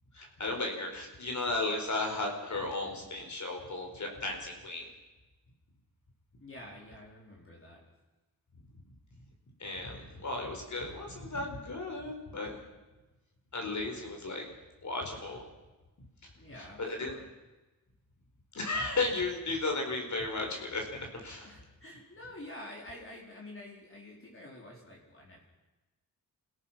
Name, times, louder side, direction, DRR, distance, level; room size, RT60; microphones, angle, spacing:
voice 1, 0.1-4.9 9.6-12.6 13.5-14.4 14.8-15.4 16.6-17.1 18.5-20.9 21.2-21.6, left 2 dB, 50° left, 2 dB, 5.0 m, -35 dB
voice 2, 6.4-7.8 16.4-17.3 21.4-25.4, left 1 dB, 35° left, -2 dB, 4.8 m, -48 dB
28.5 x 17.5 x 6.0 m, 1.1 s
wide cardioid pair, 110°, 36 cm